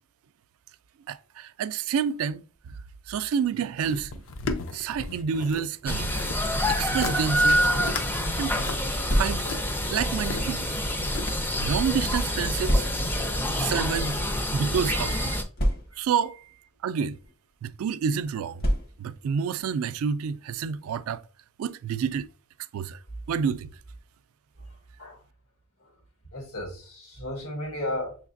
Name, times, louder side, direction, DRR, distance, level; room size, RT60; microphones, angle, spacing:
voice 1, 1.1-2.7 3.1-4.3 4.7-6.1 6.7-7.7 8.3-8.6 9.2-9.4 9.9-10.8 11.6-12.9 13.6-14.2 14.5-15.1 16.0-16.4 16.8-17.2 17.6-18.6 19.0-21.2 21.6-22.3 22.7-23.0 23.3-23.7, right 7 dB, 75° right, 0.3 m, -28 dB
sound 1, 3.8-5.6 5.9-6.4 6.8-7.2 7.5-8.1 8.4-10.4 10.9-11.5 12.0-12.1, left 3 dB, 65° left, 0.5 m, -35 dB
sound 2, 5.9-15.4, equal, 10° left, 0.4 m, -27 dB
sound 3, 9.0-9.7 10.5-11.5 12.6-13.2 14.1-14.3 14.5-14.6 15.5-16.2 17.1-17.3 18.6-19.2, equal, 45° left, 0.9 m, -27 dB
voice 2, 13.9-14.4 14.8-15.4 16.3-16.4 24.6-25.2 25.8-26.0 26.3-28.2, left 1 dB, 85° left, 1.7 m, -36 dB
6.2 x 3.2 x 2.5 m
head